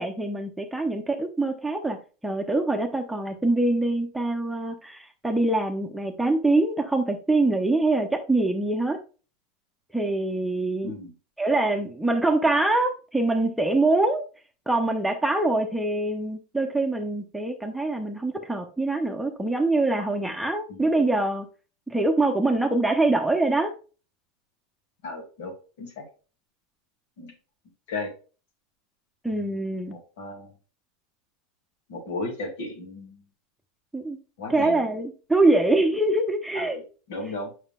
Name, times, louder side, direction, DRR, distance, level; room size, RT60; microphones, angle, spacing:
voice 1, 0.0-2.0 2.2-9.0 9.9-10.9 11.4-14.2 14.7-21.5 21.9-23.7 29.2-30.0 33.9-34.2 34.5-36.8, right 2 dB, 5° right, 4 dB, 0.9 m, -24 dB
voice 2, 25.0-26.0 27.2-27.3 27.9-28.1 29.3-29.5 29.9-30.5 31.9-33.2 34.4-34.8 36.5-36.8 37.1-37.5, left 3 dB, 65° left, 1 dB, 2.5 m, -35 dB
7.0 x 5.8 x 2.4 m, 0.35 s
hypercardioid pair, 85°, 0 cm